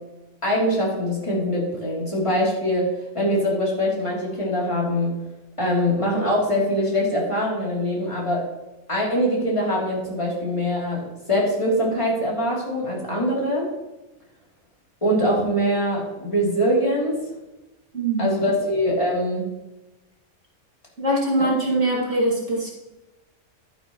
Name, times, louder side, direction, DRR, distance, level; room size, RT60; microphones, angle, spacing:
voice 1, 0.4-5.2 5.6-8.4 8.9-13.7 15.0-17.2 18.2-19.5, equal, 20° left, -4 dB, 3.1 m, -23 dB
voice 2, 17.9-18.3 21.0-22.7, right 1 dB, 55° right, -4 dB, 2.6 m, -22 dB
12.0 x 9.2 x 3.1 m, 1.0 s
omnidirectional pair, 1.5 m